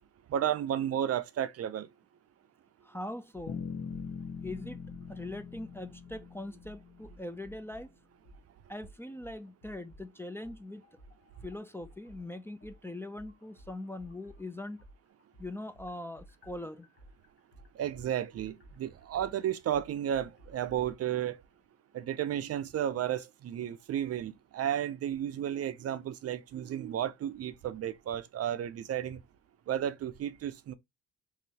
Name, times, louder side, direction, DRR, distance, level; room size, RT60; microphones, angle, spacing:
voice 1, 0.3-1.9 17.7-21.4 21.9-29.2 29.7-30.7, right 10 dB, 55° right, 0.5 m, -33 dB
voice 2, 2.8-3.6 4.4-4.8 5.1-7.9 8.7-10.8 11.4-14.8 15.4-16.9, left 1 dB, 10° left, 0.4 m, -41 dB
sound 1, 3.3-3.5 3.9-4.1 4.4-5.7 6.1-6.2 6.6-7.9 8.2-8.4 8.8-10.1 10.4-14.4 14.8-20.8, right 1 dB, 35° left, 1.1 m, -55 dB
sound 2, 3.5-7.4, left 6 dB, 65° left, 1.2 m, -42 dB
3.7 x 3.0 x 2.8 m
cardioid pair, 90°, 30 cm